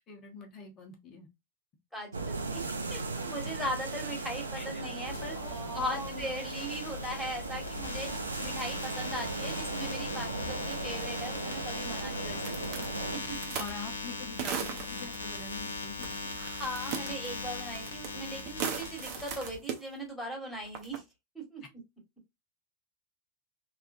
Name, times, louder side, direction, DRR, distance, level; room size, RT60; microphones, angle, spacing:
voice 1, 0.1-1.3 4.5-4.8 5.3-6.3 13.6-16.4, left 3 dB, 30° left, 1.1 m, -44 dB
voice 2, 1.9-5.3 5.7-8.1 8.4-12.9 13.3-13.6 16.4-21.0 21.3-21.6, equal, ahead, 1.6 m, -39 dB
sound 1, 2.1-13.2, right 3 dB, 75° right, 0.5 m, -37 dB
sound 2, 5.0-19.6, left 3 dB, 70° left, 0.7 m, -40 dB
sound 3, 12.4-13.8 14.4-15.2 16.0-16.4 16.6-18.1 18.4-19.8 20.7-21.0, right 7 dB, 40° right, 0.8 m, -36 dB
3.3 x 2.5 x 2.6 m
figure-of-eight pair, 90°, 0 cm